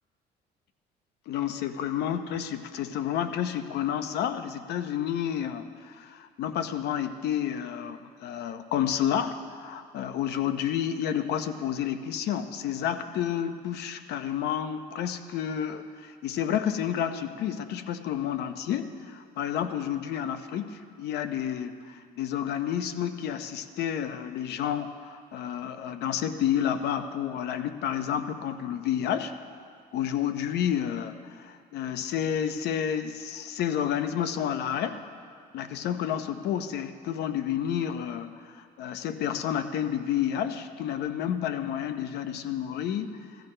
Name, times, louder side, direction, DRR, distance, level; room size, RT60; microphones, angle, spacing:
voice 1, 1.3-29.3 29.9-35.0 35.5-43.2, left 9 dB, 75° left, 9 dB, 0.8 m, -30 dB
17.5 x 14.0 x 3.3 m, 2.2 s
cardioid pair, 110°, 17 cm